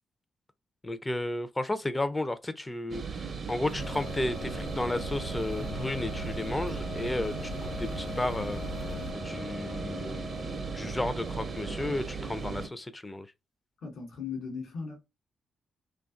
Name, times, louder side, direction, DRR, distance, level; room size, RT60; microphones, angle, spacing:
voice 1, 0.8-8.6 9.2-13.3, left 2 dB, 20° left, 0.4 m, -33 dB
sound 1, 2.9-12.7, right 5 dB, 55° right, 0.5 m, -37 dB
sound 2, 3.7-9.1, left 2 dB, 90° left, 0.3 m, -41 dB
sound 3, 3.8-12.7, left 1 dB, 45° left, 1.0 m, -43 dB
voice 2, 13.8-15.1, left 5 dB, 70° left, 0.7 m, -38 dB
2.4 x 2.3 x 2.3 m
hypercardioid pair, 45°, 0 cm